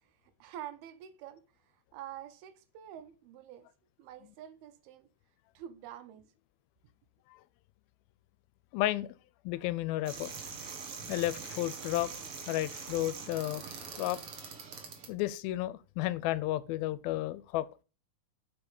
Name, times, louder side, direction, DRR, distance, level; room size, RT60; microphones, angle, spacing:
voice 1, 0.4-1.4 1.9-3.7 4.0-5.1 5.5-6.3, right 11 dB, 90° right, 2.9 m, -47 dB
voice 2, 8.7-9.1 9.5-10.3 11.1-12.1 12.5-13.6 14.0-14.2 15.1-17.7, left 15 dB, 85° left, 2.3 m, -32 dB
sound 1, 10.0-15.1, right 5 dB, 50° right, 1.8 m, -43 dB
8.1 x 5.4 x 5.3 m
omnidirectional pair, 4.4 m